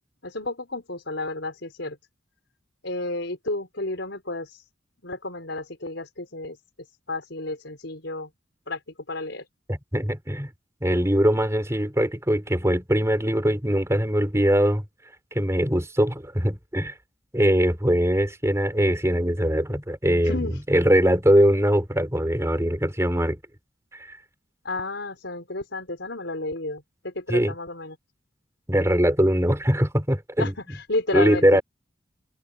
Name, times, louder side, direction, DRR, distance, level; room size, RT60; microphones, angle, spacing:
voice 1, 0.2-2.0 2.8-4.6 5.0-6.6 7.1-8.3 8.7-8.8 9.1-9.4 20.2-20.6 24.6-28.0 30.4-31.6, left 2 dB, 75° left, 4.8 m, -31 dB
voice 2, 9.7-10.5 10.8-14.8 15.3-16.9 17.3-23.4 24.0-24.2 27.3-27.5 28.7-30.5 31.1-31.6, equal, 15° right, 4.2 m, -22 dB
head